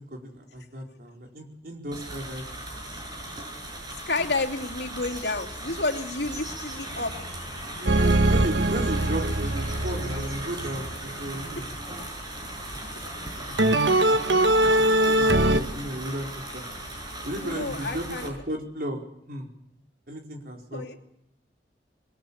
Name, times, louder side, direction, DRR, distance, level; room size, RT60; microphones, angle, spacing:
voice 1, 0.0-2.6 7.8-11.7 13.3-16.7 17.2-19.5 20.1-20.8, right 1 dB, 55° right, 1 dB, 4.8 m, -35 dB
sound 1, 1.9-18.3, right 1 dB, 25° right, 7.5 m, -37 dB
voice 2, 4.1-7.2 7.7-8.5 17.4-18.3 20.7-21.0, left 3 dB, 75° left, 2 dB, 2.7 m, -31 dB
sound 2, 7.9-11.3 13.6-15.6, right 1 dB, 85° right, 1.3 m, -22 dB
27.0 x 21.5 x 7.2 m, 0.77 s
head